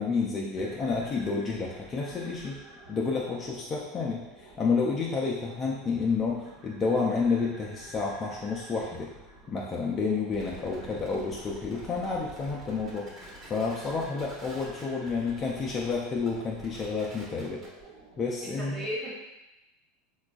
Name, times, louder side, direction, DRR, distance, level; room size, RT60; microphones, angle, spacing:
voice 1, 0.0-2.6 2.9-9.1 9.5-13.1 13.5-17.6 18.2-18.9, left 4 dB, 30° left, -3 dB, 0.4 m, -30 dB
sound 1, 0.6-18.5, right 2 dB, 50° right, 1.1 m, -51 dB
sound 2, 10.3-17.8, right 1 dB, 35° right, 1.2 m, -48 dB
voice 2, 10.4-11.1 18.4-19.1, equal, 10° right, -7 dB, 1.1 m, -38 dB
3.7 x 2.3 x 2.4 m, 1.0 s
supercardioid pair, 115°, 0 cm